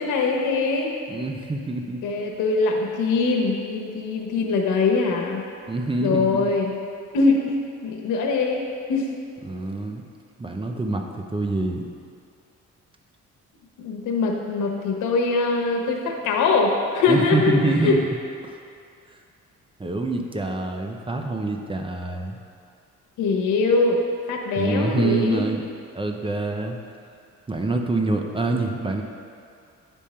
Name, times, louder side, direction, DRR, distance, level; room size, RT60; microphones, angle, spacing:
voice 1, 0.0-0.9 2.0-5.4 6.0-6.8 7.1-7.4 7.8-8.6 8.9-9.1 13.8-17.5 17.8-18.0 23.2-25.5, left 3 dB, 90° left, 1 dB, 1.0 m, -22 dB
voice 2, 1.1-2.0 5.7-6.5 9.4-10.0 10.4-11.9 17.1-18.0 18.4-18.6 19.8-22.4 24.6-25.6 25.9-26.8 27.5-29.0, right 2 dB, 15° right, 3 dB, 0.6 m, -26 dB
9.7 x 3.6 x 4.3 m, 2.5 s
cardioid pair, 90°, 30 cm